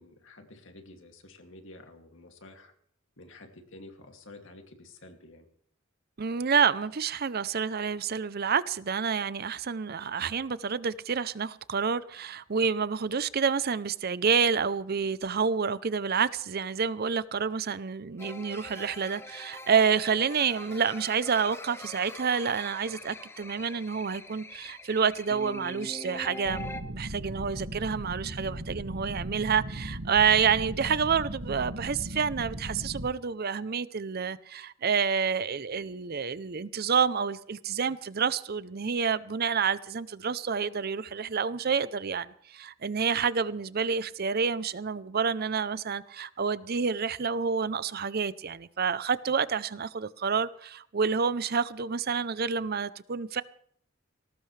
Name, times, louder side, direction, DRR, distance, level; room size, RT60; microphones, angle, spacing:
voice 1, 0.0-2.7 3.2-5.5, left 2 dB, 65° left, 2.5 m, -50 dB
voice 2, 6.2-53.4, right 6 dB, 50° right, 0.6 m, -28 dB
sound 1, 18.2-26.8, left 2 dB, 10° left, 0.8 m, -43 dB
sound 2, 26.4-33.1, right 1 dB, 90° right, 2.1 m, -38 dB
20.0 x 18.5 x 3.3 m
head